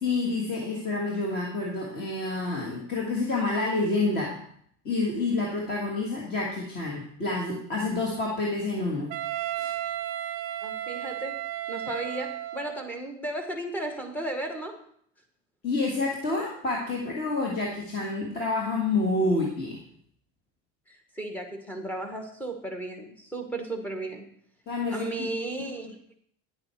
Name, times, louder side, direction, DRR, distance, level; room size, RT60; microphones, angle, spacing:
voice 1, 0.0-4.4 4.8-9.1 9.6-9.7 15.6-19.8 24.7-25.3, left 3 dB, 30° left, -2 dB, 1.5 m, -28 dB
Wind instrument woodwind instrument, 9.1-12.9, right 13 dB, 60° right, 0.6 m, -33 dB
voice 2, 10.6-14.8 20.9-24.3 24.9-26.1, right 1 dB, 5° left, 3 dB, 1.0 m, -35 dB
10.0 x 7.6 x 4.4 m, 0.63 s
cardioid pair, 175°, 35 cm